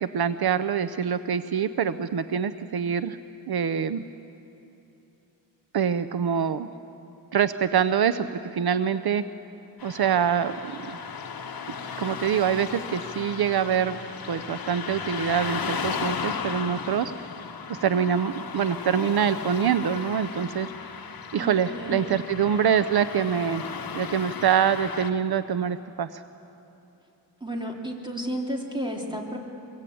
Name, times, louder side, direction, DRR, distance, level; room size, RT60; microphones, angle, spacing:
voice 1, 0.0-3.2 3.5-4.0 5.7-6.7 7.3-8.3 8.5-9.2 9.8-11.0 12.0-14.0 14.3-17.1 17.7-21.0 21.3-23.6 23.9-26.2, right 8 dB, 70° right, 12 dB, 0.7 m, -25 dB
Car passing by / Traffic noise roadway noise, 9.8-25.1, left 6 dB, 60° left, 1.4 m, -35 dB
voice 2, 21.4-22.2 27.4-29.4, right 1 dB, 10° right, 0 dB, 3.1 m, -32 dB
23.5 x 23.0 x 8.6 m, 2.9 s
wide cardioid pair, 120°, 39 cm